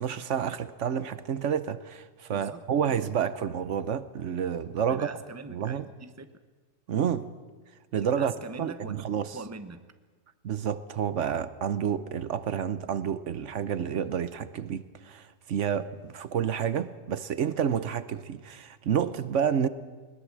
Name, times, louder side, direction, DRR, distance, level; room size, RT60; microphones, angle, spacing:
voice 1, 0.0-5.1 5.5-5.8 6.9-7.3 7.9-9.4 10.4-19.7, right 8 dB, 75° right, 1.2 m, -29 dB
voice 2, 2.3-3.1 4.9-6.3 8.2-8.9 9.3-9.8, right 4 dB, 15° right, 0.9 m, -42 dB
21.0 x 20.5 x 7.4 m
omnidirectional pair, 1.3 m